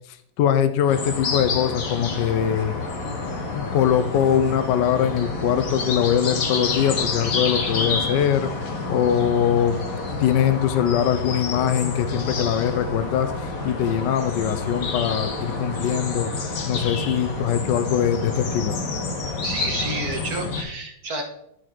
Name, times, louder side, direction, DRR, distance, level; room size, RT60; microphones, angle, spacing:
voice 1, 0.1-2.7 3.5-8.5 8.9-9.8 10.2-16.3 16.7-18.8, left 9 dB, 75° left, 11 dB, 1.2 m, -22 dB
sound 1, 0.9-20.6, left 3 dB, 50° left, 1.5 m, -28 dB
voice 2, 19.4-21.2, right 3 dB, 55° right, 4 dB, 1.5 m, -30 dB
13.0 x 4.4 x 4.5 m, 0.74 s
omnidirectional pair, 2.1 m